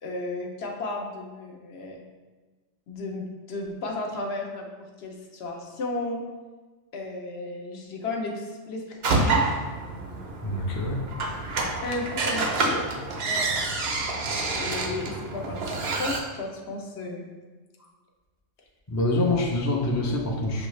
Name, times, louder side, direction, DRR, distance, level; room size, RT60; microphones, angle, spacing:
voice 1, 0.0-2.0 2.9-6.2 6.9-9.7 11.8-12.8 13.2-13.5 14.4-17.3, left 2 dB, 65° left, 0 dB, 0.9 m, -34 dB
sound 1, 9.0-16.2, right 3 dB, 65° right, 0.8 m, -28 dB
voice 2, 10.4-11.0 18.9-20.7, left 2 dB, 25° left, -2 dB, 0.4 m, -25 dB
6.8 x 2.4 x 3.1 m, 1.3 s
omnidirectional pair, 1.2 m